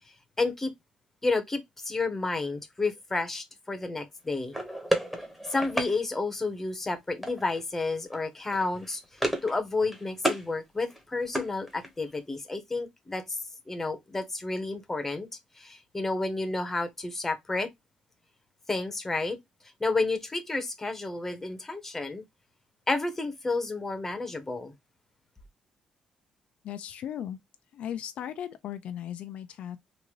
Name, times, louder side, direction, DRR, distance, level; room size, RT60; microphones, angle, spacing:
voice 1, 0.4-0.7 1.2-4.5 5.5-9.0 9.4-13.4 13.7-15.3 15.5-17.7 18.7-19.4 19.8-22.2 22.9-24.7, left 3 dB, 15° left, 0.9 m, -31 dB
sound 1, 4.5-5.9 7.2-7.6 7.9-8.2 8.5-9.6 9.8-10.5 10.8-12.1, right 1 dB, 5° right, 1.2 m, -32 dB
voice 2, 26.6-27.4 27.7-29.8, left 10 dB, 70° left, 0.4 m, -37 dB
3.8 x 2.5 x 3.0 m
cardioid pair, 140°, 2 cm